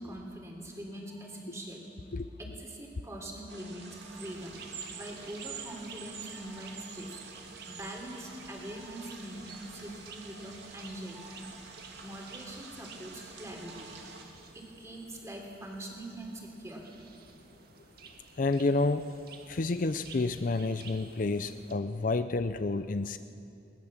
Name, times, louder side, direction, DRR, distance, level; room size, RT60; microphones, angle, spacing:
voice 1, 0.0-1.8 2.4-4.6 4.9-7.2 7.7-11.6 12.0-13.9 14.5-16.9, right 1 dB, 15° right, 0 dB, 3.4 m, -43 dB
sound 1, 3.5-14.2, right 3 dB, 75° right, 2.6 m, -50 dB
sound 2, 4.2-21.7, right 6 dB, 55° right, 1.8 m, -50 dB
voice 2, 18.4-19.0 19.5-23.2, left 3 dB, 50° left, 11 dB, 0.5 m, -29 dB
20.5 x 19.5 x 7.3 m, 2.6 s
head